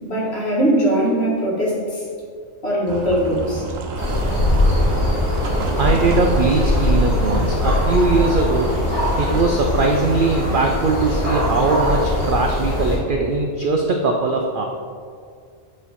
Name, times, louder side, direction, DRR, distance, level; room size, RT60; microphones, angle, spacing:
voice 1, 0.0-2.1 2.6-3.7, right 1 dB, 50° left, -6 dB, 1.9 m, -20 dB
sound 1, 2.9-9.4, right 3 dB, 85° right, 1.1 m, -30 dB
sound 2, 4.0-13.0, left 1 dB, 65° left, 2.1 m, -21 dB
voice 2, 5.8-8.7 9.2-14.7, right 3 dB, 70° right, 2 dB, 0.5 m, -20 dB
8.3 x 3.1 x 4.2 m, 2.1 s
omnidirectional pair, 1.4 m